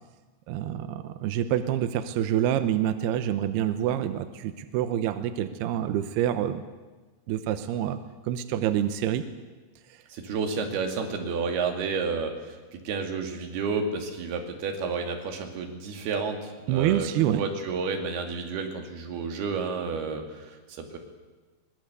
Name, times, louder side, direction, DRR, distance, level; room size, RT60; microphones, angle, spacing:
voice 1, 0.5-6.6 7.3-8.0 8.2-9.2 9.9-10.0 16.7-17.4, right 11 dB, 80° right, 10 dB, 2.4 m, -27 dB
voice 2, 10.1-17.1 17.4-21.0, right 5 dB, 55° right, 4 dB, 4.0 m, -31 dB
23.0 x 21.0 x 8.1 m, 1.3 s
omnidirectional pair, 5.8 m